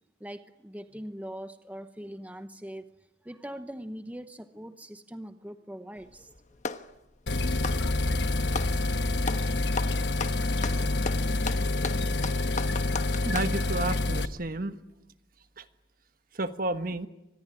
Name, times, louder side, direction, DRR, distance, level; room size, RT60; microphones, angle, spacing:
voice 1, 0.2-2.9 3.2-6.4, equal, 10° right, 9 dB, 0.9 m, -41 dB
Clapping, 6.0-6.9 7.5-8.8 9.2-9.5 9.8-13.6, left 4 dB, 40° left, 1.1 m, -35 dB
sound 1, 7.3-14.3, left 2 dB, 65° left, 1.1 m, -27 dB
voice 2, 13.2-14.8 15.6-15.7 16.3-17.1, right 2 dB, 50° right, 9 dB, 1.3 m, -31 dB
25.5 x 20.0 x 9.8 m, 0.96 s
head